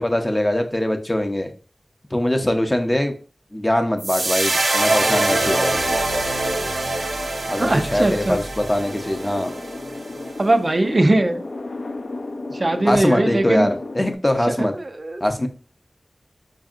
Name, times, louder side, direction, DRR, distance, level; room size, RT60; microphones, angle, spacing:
voice 1, 0.0-1.5 2.1-3.1 3.5-5.8 7.5-9.5 12.9-14.7 15.2-15.5, left 1 dB, 20° left, 5 dB, 0.6 m, -22 dB
sound 1, 4.0-10.3, right 2 dB, 85° right, 0.6 m, -24 dB
voice 2, 7.6-8.4 10.4-11.4 12.5-13.7 14.6-15.2, right 2 dB, 45° right, 6 dB, 0.4 m, -20 dB
sound 2, 8.8-14.1, left 2 dB, 65° left, 0.4 m, -33 dB
5.1 x 2.7 x 2.4 m, 0.37 s
wide cardioid pair, 80°, 0 cm